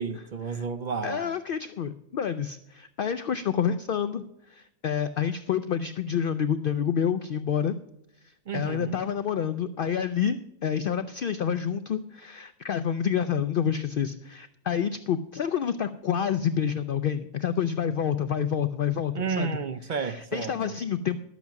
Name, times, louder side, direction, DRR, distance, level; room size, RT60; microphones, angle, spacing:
voice 1, 0.0-1.3 8.5-9.0 19.1-20.7, right 6 dB, 60° right, 0.5 m, -32 dB
voice 2, 1.0-7.8 8.5-19.5 19.9-21.2, left 8 dB, 65° left, 0.5 m, -28 dB
12.0 x 8.2 x 5.8 m
omnidirectional pair, 1.4 m